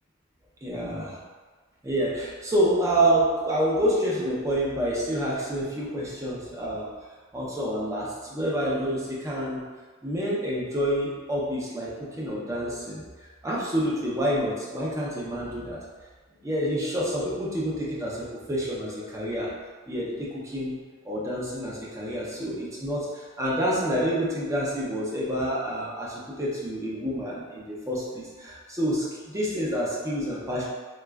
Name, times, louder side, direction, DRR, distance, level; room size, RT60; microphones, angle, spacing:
voice 1, 0.6-1.2 1.8-6.9 7.3-9.6 10.0-13.0 13.4-15.8 16.4-19.5 19.9-20.8 21.0-30.6, right 1 dB, 15° right, -5 dB, 0.6 m, -28 dB
4.0 x 2.3 x 2.3 m, 1.4 s
head